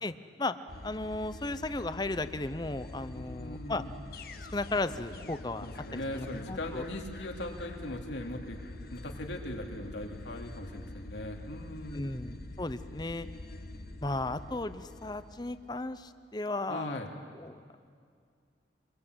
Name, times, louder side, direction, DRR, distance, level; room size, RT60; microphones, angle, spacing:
sound 1, 0.7-16.0, left 2 dB, 55° left, 1.2 m, -45 dB
voice 1, 0.8-3.8 4.5-5.7 5.9-6.8 11.9-13.3 14.0-17.0 17.4-17.6, left 2 dB, 25° left, 12 dB, 0.7 m, -35 dB
voice 2, 3.1-3.9 5.6-8.6 8.9-12.2 16.7-17.1, left 1 dB, 85° left, 2 dB, 2.8 m, -39 dB
26.0 x 22.5 x 8.1 m, 2.2 s
head